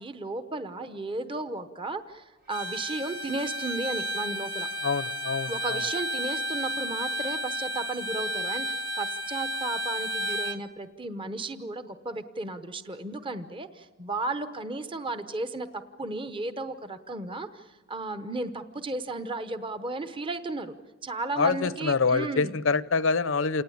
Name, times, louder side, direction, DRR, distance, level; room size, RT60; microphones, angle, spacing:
voice 1, 0.0-4.7 5.5-20.8 21.0-22.6, right 2 dB, 25° right, 10 dB, 0.8 m, -34 dB
Bowed string instrument, 2.5-10.6, equal, 45° right, 1.5 m, -32 dB
voice 2, 4.8-5.8 21.4-23.6, left 4 dB, 65° left, 16 dB, 0.7 m, -26 dB
28.0 x 19.0 x 8.6 m, 1.2 s
head